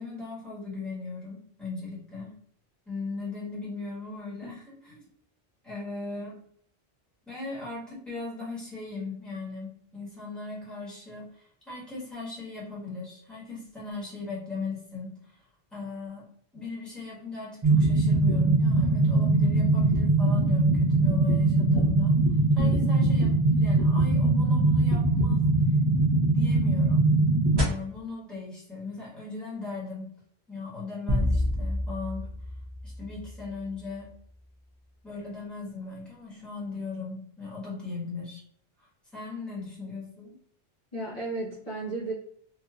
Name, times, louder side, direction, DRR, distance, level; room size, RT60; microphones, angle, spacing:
voice 1, 0.0-2.3 2.9-5.1 5.6-6.4 7.3-15.4 15.7-16.2 16.5-22.2 22.5-23.3 23.6-25.4 26.3-27.1 27.6-30.1 30.5-32.3 32.8-34.1 35.0-38.4 39.1-40.3, left 3 dB, ahead, -7 dB, 1.4 m, -38 dB
sound 1, 17.6-27.6, right 2 dB, 25° right, 0.8 m, -22 dB
sound 2, 31.1-33.7, left 1 dB, 45° right, 0.3 m, -29 dB
voice 2, 40.9-42.1, right 1 dB, 35° left, -9 dB, 1.1 m, -33 dB
3.2 x 2.6 x 2.4 m, 0.65 s
omnidirectional pair, 1.1 m